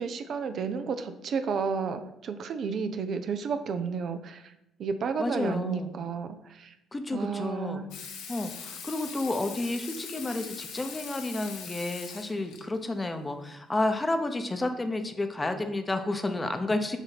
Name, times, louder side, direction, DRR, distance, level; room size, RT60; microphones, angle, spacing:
voice 1, 0.0-4.5 4.8-6.7 7.1-7.9, right 5 dB, 60° right, 8 dB, 0.5 m, -32 dB
voice 2, 5.2-6.0 6.9-7.8 8.3-17.0, left 2 dB, 20° left, 7 dB, 0.8 m, -31 dB
Water tap faucet / Sink (filling or washing), 7.9-12.6 14.1-14.2, left 6 dB, 80° left, 0.8 m, -42 dB
7.1 x 2.7 x 5.8 m, 0.87 s
hypercardioid pair, 55°, 0 cm